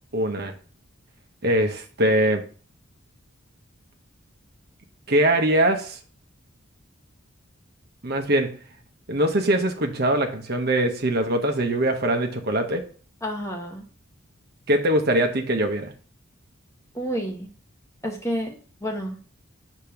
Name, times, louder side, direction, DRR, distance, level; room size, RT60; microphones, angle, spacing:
voice 1, 0.1-0.5 1.4-2.4 5.1-6.0 8.0-8.6 9.1-12.9 14.7-15.9, right 1 dB, 45° right, 4 dB, 0.9 m, -22 dB
voice 2, 13.2-13.9 16.9-17.5 18.0-19.2, equal, 15° left, 1 dB, 0.9 m, -30 dB
6.7 x 2.9 x 5.8 m, 0.39 s
head